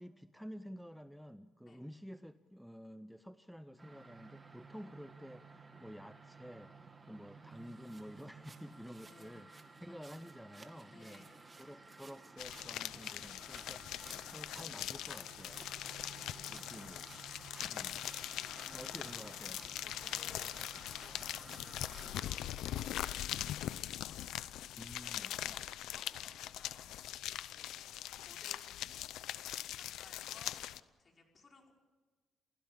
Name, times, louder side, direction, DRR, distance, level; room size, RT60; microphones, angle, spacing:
voice 1, 0.0-6.7 7.1-9.5 9.8-11.3 11.6-15.7 16.5-17.1 17.6-18.0 18.7-19.6 24.7-25.6, equal, ahead, 11 dB, 0.7 m, -51 dB
sound 1, 3.8-22.3, right 4 dB, 25° right, 2.4 m, -55 dB
voice 2, 9.1-10.0 10.9-11.5 18.3-19.5 19.8-20.5 20.9-24.8 25.1-26.9 27.5-27.7 28.2-29.1 29.7-30.6 31.0-31.7, left 3 dB, 40° left, 1 dB, 5.4 m, -61 dB
sound 2, 12.4-30.8, left 12 dB, 85° left, 0.7 m, -42 dB
29.5 x 16.0 x 7.3 m, 1.4 s
cardioid pair, 90°, 0 cm